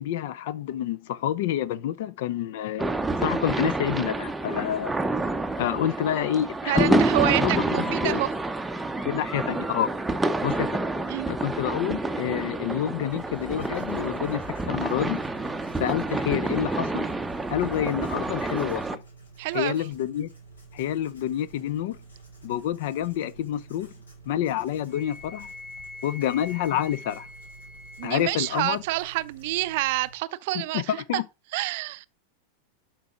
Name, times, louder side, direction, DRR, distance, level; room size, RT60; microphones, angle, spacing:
voice 1, 0.0-2.9 3.2-4.9 5.6-8.2 9.0-9.9 10.4-10.8 11.3-15.3 15.8-17.1 17.5-19.0 19.5-20.3 20.7-22.0 22.4-23.9 24.3-25.5 26.0-27.3 28.0-28.8 30.5-30.8 31.1-31.2, left 11 dB, 50° left, 0.6 m, -28 dB
sound 1, 2.8-19.0, right 2 dB, 5° right, 0.7 m, -28 dB
voice 2, 6.7-8.3 11.1-11.3 19.4-19.7 28.0-31.2 31.5-32.1, right 18 dB, 50° right, 0.5 m, -28 dB
Writing, 13.1-30.1, right 4 dB, 70° left, 3.0 m, -50 dB
Wind instrument woodwind instrument, 24.9-28.6, left 2 dB, 25° left, 1.2 m, -44 dB
12.0 x 4.7 x 3.8 m
figure-of-eight pair, 90°, 0 cm